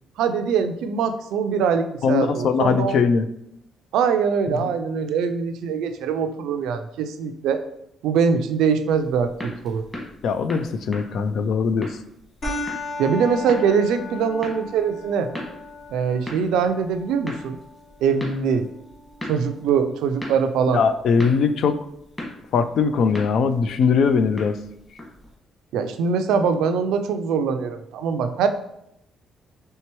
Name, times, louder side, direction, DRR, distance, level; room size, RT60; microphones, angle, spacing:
voice 1, 0.2-3.0 3.9-7.6 8.0-9.9 13.0-15.3 15.9-17.6 18.0-18.7 19.3-20.8 25.7-28.5, right 6 dB, 90° right, 8 dB, 0.3 m, -22 dB
voice 2, 2.0-3.3 4.5-4.7 10.2-12.0 20.7-21.8 22.5-24.6, left 5 dB, 70° left, 10 dB, 0.3 m, -21 dB
sound 1, 8.9-25.3, left 1 dB, 15° left, 1.5 m, -40 dB
sound 2, 12.4-21.4, left 2 dB, 50° left, 1.6 m, -37 dB
4.5 x 3.3 x 3.0 m, 0.78 s
cardioid pair, 90°, 0 cm